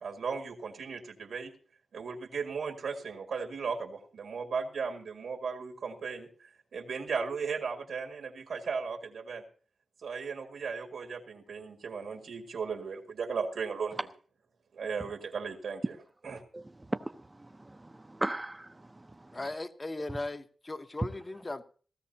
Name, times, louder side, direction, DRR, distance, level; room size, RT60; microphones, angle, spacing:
voice 1, 0.0-1.5 1.9-6.3 6.7-9.4 10.0-14.1 14.7-16.0 16.2-16.4, right 5 dB, 85° right, 2.0 m, -36 dB
voice 2, 16.5-19.4, right 2 dB, 15° right, 0.6 m, -38 dB
voice 3, 19.3-21.6, left 2 dB, 25° left, 0.9 m, -37 dB
18.0 x 15.0 x 2.8 m
wide cardioid pair, 120°, 0 cm